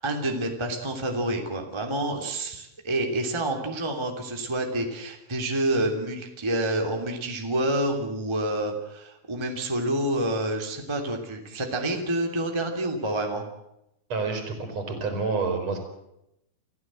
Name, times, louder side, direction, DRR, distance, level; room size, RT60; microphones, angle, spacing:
voice 1, 0.0-13.4, right 1 dB, 10° right, 2 dB, 2.0 m, -28 dB
voice 2, 14.1-15.8, right 4 dB, 40° right, 4 dB, 4.6 m, -28 dB
27.5 x 16.0 x 7.7 m, 0.85 s
omnidirectional pair, 5.2 m